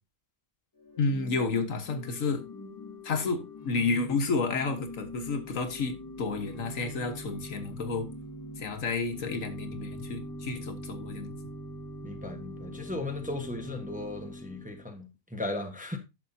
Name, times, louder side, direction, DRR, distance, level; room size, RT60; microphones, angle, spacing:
Organ / Church bell, 0.8-14.9, equal, 15° left, 1.0 m, -43 dB
voice 1, 1.0-2.5 3.0-8.1 8.6-11.3, left 4 dB, 75° left, 1.6 m, -31 dB
voice 2, 12.0-16.0, left 2 dB, 5° right, 0.9 m, -36 dB
11.0 x 6.8 x 2.7 m
omnidirectional pair, 1.4 m